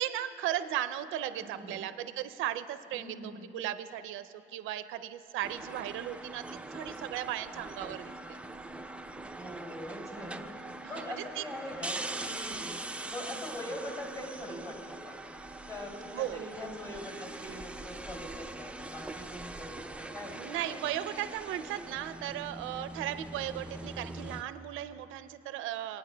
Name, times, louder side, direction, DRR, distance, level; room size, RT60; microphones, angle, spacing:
voice 1, 0.0-8.4 10.8-11.4 16.1-16.5 20.4-26.0, right 12 dB, 90° right, 11 dB, 0.4 m, -36 dB
voice 2, 1.3-1.8 2.9-3.5 9.4-10.4 10.8-15.2 15.7-20.4, left 1 dB, 15° left, 0 dB, 2.7 m, -43 dB
sound 1, 5.4-24.4, right 2 dB, 5° right, 0.4 m, -42 dB
24.5 x 9.2 x 2.2 m, 2.6 s
cardioid pair, 90°, 20 cm